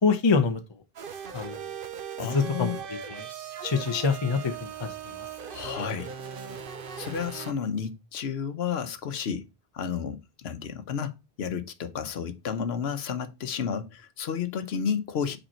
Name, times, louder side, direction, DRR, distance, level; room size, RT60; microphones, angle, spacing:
voice 1, 0.0-0.6 1.3-1.6 2.3-2.7 3.1-3.3 3.6-5.1, left 5 dB, 30° left, 0.7 m, -25 dB
sound 1, 1.0-7.5, right 7 dB, 60° right, 0.9 m, -39 dB
voice 2, 2.2-2.8 5.5-6.1 7.0-9.4 9.7-15.4, left 7 dB, 80° left, 1.0 m, -32 dB
5.3 x 4.4 x 4.3 m
omnidirectional pair, 1.1 m